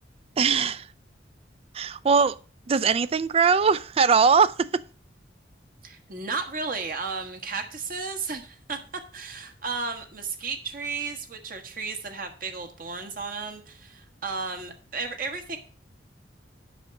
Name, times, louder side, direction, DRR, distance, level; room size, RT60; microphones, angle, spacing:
voice 1, 0.4-0.9 1.7-2.4 2.7-4.8, right 5 dB, 35° right, 0.3 m, -21 dB
voice 2, 5.8-8.8 9.1-15.6, right 4 dB, 50° right, 1.2 m, -34 dB
7.9 x 5.8 x 6.3 m
head